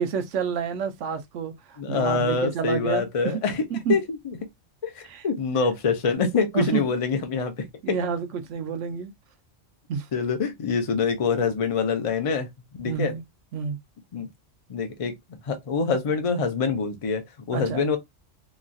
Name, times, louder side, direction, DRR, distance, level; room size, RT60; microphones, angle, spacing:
voice 1, 0.0-3.4 3.7-4.0 5.0-5.2 6.5-6.8 7.8-9.1 9.9-10.1 12.8-13.2 13.5-13.8 17.5-17.9, right 7 dB, 75° right, 0.9 m, -29 dB
voice 2, 1.8-3.6 3.9-4.4 4.8-8.0 10.1-12.5 12.8-13.1 14.1-14.3 14.7-15.2 15.4-18.0, left 5 dB, 45° left, 0.4 m, -25 dB
3.0 x 2.3 x 2.5 m
omnidirectional pair, 1.3 m